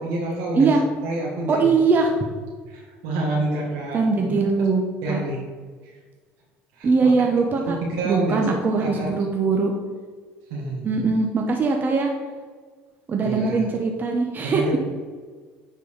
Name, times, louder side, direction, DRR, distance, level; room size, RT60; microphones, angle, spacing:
voice 1, 0.0-0.7 1.0-1.7 2.7-4.0 5.0-5.4 5.8-6.0 6.8-7.1 7.8-8.5 8.8-9.1 10.5-11.0 13.2-13.6 14.5-14.8, right 2 dB, 80° right, -4 dB, 1.9 m, -28 dB
voice 2, 1.5-2.1 3.9-4.8 5.1-5.2 6.8-7.8 8.0-9.7 10.8-12.1 13.1-14.6, right 4 dB, 35° right, 2 dB, 1.0 m, -21 dB
9.2 x 4.5 x 4.8 m, 1.5 s
supercardioid pair, 90°, 5 cm